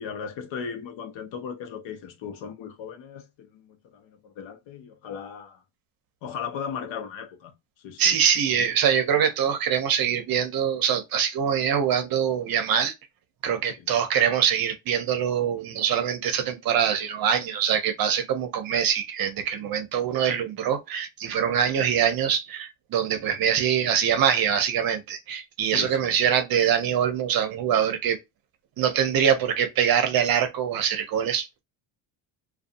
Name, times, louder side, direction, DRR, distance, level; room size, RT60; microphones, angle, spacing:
voice 1, 0.0-5.6 6.2-8.2 8.6-8.7 13.6-14.0 25.7-26.2, left 7 dB, 65° left, 0.8 m, -37 dB
voice 2, 8.0-12.9 13.4-28.2 28.8-31.6, right 8 dB, 45° right, 0.7 m, -24 dB
2.6 x 2.3 x 2.5 m
cardioid pair, 140°, 49 cm